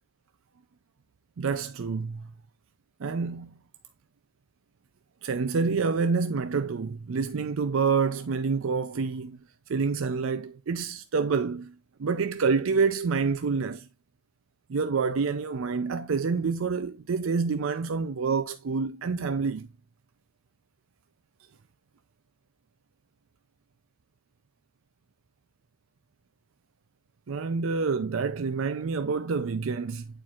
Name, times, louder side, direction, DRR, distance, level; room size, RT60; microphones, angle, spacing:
voice 1, 1.4-2.3 3.0-3.5 5.2-9.4 9.7-11.7 12.0-13.9 14.7-19.7 27.3-30.1, right 5 dB, 75° right, 0.5 m, -27 dB
9.8 x 4.5 x 2.4 m
head